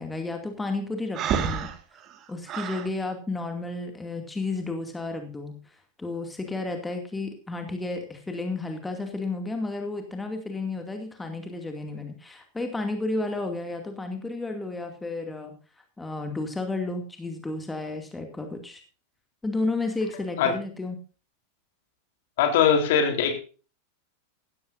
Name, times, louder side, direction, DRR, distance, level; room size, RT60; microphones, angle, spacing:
voice 1, 0.0-2.0 2.3-15.6 16.0-18.8 19.4-21.0, left 2 dB, 10° left, 5 dB, 2.4 m, -32 dB
Breathing, 1.1-2.9, right 8 dB, 35° right, 1.9 m, -29 dB
voice 2, 22.4-23.4, left 7 dB, 55° left, 5 dB, 3.7 m, -21 dB
16.5 x 14.0 x 2.6 m, 0.36 s
figure-of-eight pair, 90°, 0 cm